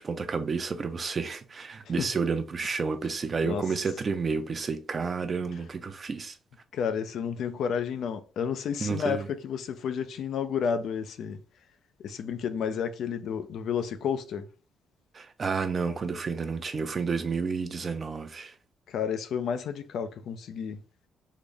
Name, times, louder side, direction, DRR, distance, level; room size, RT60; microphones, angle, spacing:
voice 1, 0.0-6.4 8.8-9.3 15.1-18.5, right 5 dB, 40° right, 0.5 m, -30 dB
voice 2, 6.7-11.4 12.0-14.5 18.9-20.8, left 7 dB, 70° left, 0.4 m, -31 dB
3.8 x 2.0 x 3.3 m
cardioid pair, 90°, 0 cm